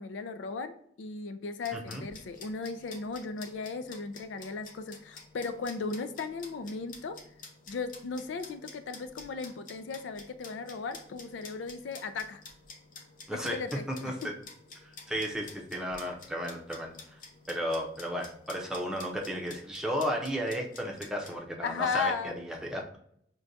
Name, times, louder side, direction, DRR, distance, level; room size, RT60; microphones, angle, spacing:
voice 1, 0.0-7.2 7.7-12.4 13.3-14.3 21.6-22.4, left 4 dB, 85° left, 10 dB, 0.4 m, -36 dB
sound 1, 1.6-21.4, left 4 dB, 50° left, 0.7 m, -51 dB
voice 2, 1.7-2.0 13.3-13.6 13.9-14.3 14.8-16.9 17.5-23.0, equal, 5° right, 0 dB, 0.6 m, -34 dB
6.2 x 2.2 x 2.6 m, 0.68 s
head